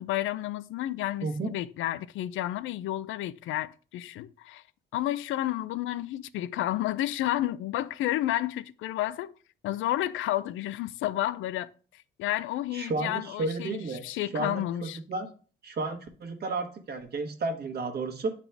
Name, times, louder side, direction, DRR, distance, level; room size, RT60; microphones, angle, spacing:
voice 1, 0.0-4.6 4.9-9.3 9.6-15.0, left 14 dB, 80° left, 0.4 m, -31 dB
voice 2, 12.7-14.0 14.3-15.3 15.6-18.3, right 3 dB, 55° right, 1.3 m, -32 dB
8.9 x 4.1 x 3.3 m
cardioid pair, 90°, 20 cm